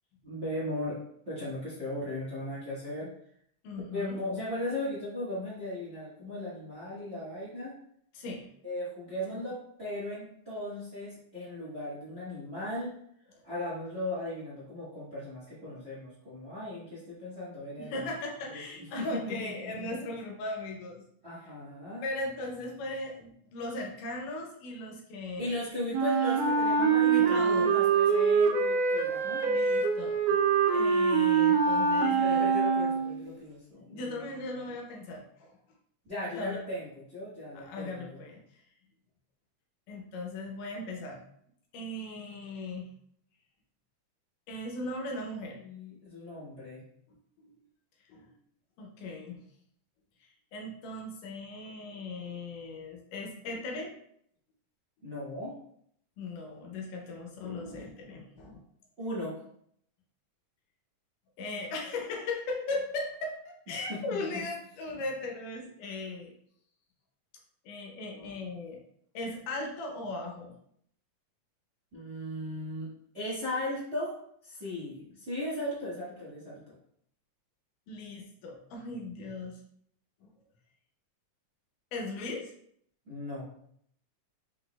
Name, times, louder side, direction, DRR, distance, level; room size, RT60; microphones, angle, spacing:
voice 1, 0.2-1.0 1.3-3.1 3.9-7.7 8.6-12.9 13.4-18.1 18.5-18.6 19.0-19.9 21.2-22.0 25.4-29.4 31.9-34.3 36.0-38.2 45.5-46.8 55.0-55.5 59.0-59.3 63.7-64.4 71.9-74.2 74.4-76.8 83.1-83.4, left 1 dB, 45° right, -9 dB, 0.8 m, -37 dB
voice 2, 3.6-4.2 8.1-8.5 9.3-9.4 17.8-21.0 21.4-21.5 22.0-25.5 27.0-27.7 29.4-30.4 30.7-32.5 33.9-35.6 36.3-36.6 37.5-38.6 39.9-41.2 41.7-42.9 44.5-45.6 47.1-47.5 48.1-48.3 48.8-49.4 50.5-53.9 56.2-58.6 61.4-66.3 67.7-68.8 69.1-70.6 77.9-79.6 80.2-80.3 81.9-82.5, left 2 dB, 80° left, 1 dB, 2.5 m, -38 dB
Wind instrument woodwind instrument, 25.9-33.3, right 5 dB, 90° right, 2.2 m, -25 dB
5.7 x 3.9 x 2.3 m, 0.68 s
omnidirectional pair, 3.7 m